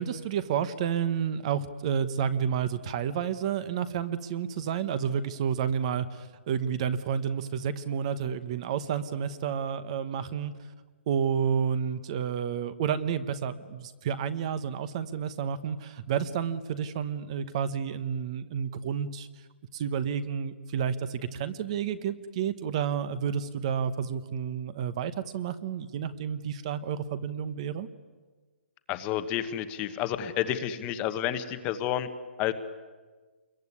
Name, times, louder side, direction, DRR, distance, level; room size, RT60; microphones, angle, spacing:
voice 1, 0.0-10.5 11.1-19.3 19.7-27.9, right 7 dB, 30° right, 14 dB, 1.0 m, -30 dB
voice 2, 28.9-32.1 32.4-32.5, left 11 dB, 20° left, 10 dB, 1.1 m, -30 dB
27.0 x 22.0 x 9.8 m, 1.4 s
hypercardioid pair, 170°, 6 cm